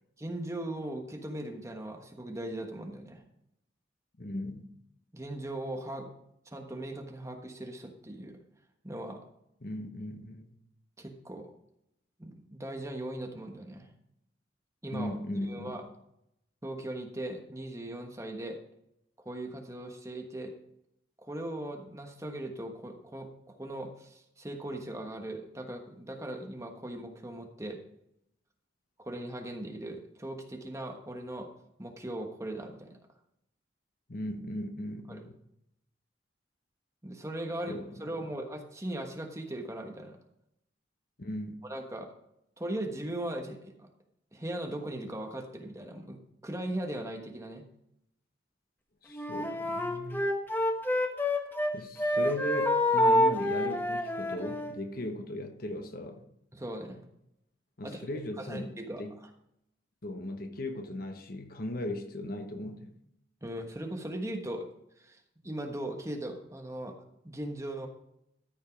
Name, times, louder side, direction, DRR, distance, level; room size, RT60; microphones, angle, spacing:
voice 1, 0.2-3.2 5.1-6.1 6.4-8.4 8.8-9.2 11.0-11.5 12.2-13.9 14.8-15.1 15.4-15.8 16.6-18.6 19.2-20.5 21.2-27.8 29.0-31.5 31.8-33.0 35.1-35.2 37.0-40.2 41.6-42.1 42.6-43.9 44.3-47.6 56.5-57.0 57.8-58.1 58.4-59.3 63.4-64.7 65.0-66.9 67.2-67.9, right 1 dB, 15° right, 1.3 m, -39 dB
voice 2, 4.2-4.7 9.6-10.5 14.9-15.8 34.1-35.3 37.7-37.9 41.2-41.6 49.0-50.3 51.7-56.2 57.8-58.7 59.0-59.1 60.0-62.9, left 1 dB, 50° left, 1.1 m, -37 dB
Wind instrument woodwind instrument, 49.1-51.7 52.0-54.7, left 1 dB, 10° left, 1.1 m, -27 dB
13.5 x 5.3 x 5.1 m
head